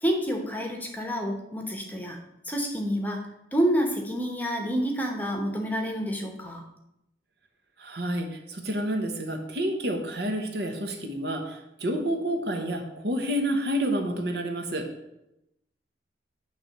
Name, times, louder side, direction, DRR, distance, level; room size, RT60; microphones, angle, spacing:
voice 1, 0.0-2.2 2.5-3.2 3.5-6.6, equal, 10° left, 2 dB, 1.0 m, -28 dB
voice 2, 7.8-14.9, right 1 dB, 60° right, 4 dB, 1.1 m, -29 dB
9.6 x 3.4 x 6.5 m, 0.86 s
head